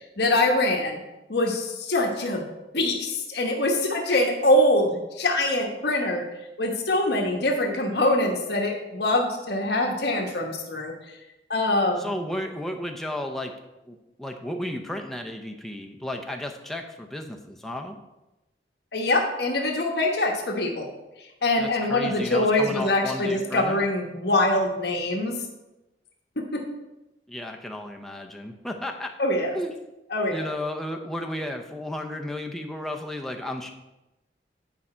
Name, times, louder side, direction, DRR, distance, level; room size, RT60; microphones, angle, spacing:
voice 1, 0.2-1.0 1.3-2.4 2.7-6.2 6.6-10.9 11.5-12.1 18.9-20.9 21.4-25.3 26.5-26.6 29.2-29.6 30.1-30.4, left 1 dB, 65° left, 1 dB, 1.2 m, -24 dB
voice 2, 12.0-13.5 13.9-18.0 21.6-23.9 27.3-29.1 29.5-29.7 30.3-33.7, left 1 dB, ahead, 2 dB, 0.6 m, -33 dB
9.6 x 4.9 x 4.4 m, 0.99 s
head